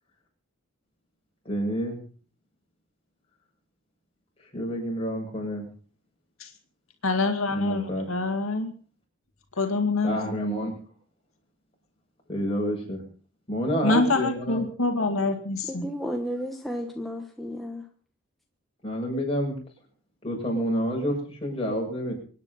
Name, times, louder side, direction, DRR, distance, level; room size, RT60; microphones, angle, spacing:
voice 1, 1.5-2.0 4.5-5.7 7.5-8.1 10.0-10.7 12.3-13.0 13.5-14.6 18.8-19.5 20.2-22.1, equal, 25° left, -1 dB, 7.3 m, -28 dB
voice 2, 7.0-8.7 9.6-10.2 13.8-15.9, left 3 dB, 75° left, 4 dB, 2.2 m, -25 dB
voice 3, 15.7-17.8, equal, ahead, 2 dB, 1.3 m, -33 dB
25.0 x 9.8 x 5.6 m, 0.43 s
head